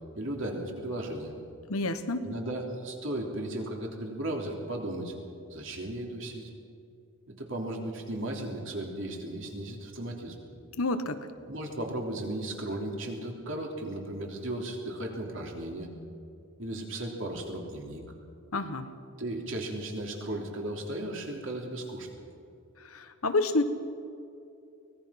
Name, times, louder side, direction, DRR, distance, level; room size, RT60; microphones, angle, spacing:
voice 1, 0.1-1.3 2.2-5.1 5.5-6.5 7.4-10.4 11.5-15.9 16.6-18.0 19.2-22.1, right 1 dB, 60° right, 1 dB, 3.2 m, -35 dB
voice 2, 1.7-2.3 10.8-11.2 18.5-18.9 22.8-23.6, left 2 dB, 80° left, 9 dB, 1.3 m, -28 dB
24.0 x 18.5 x 5.9 m, 2.6 s
head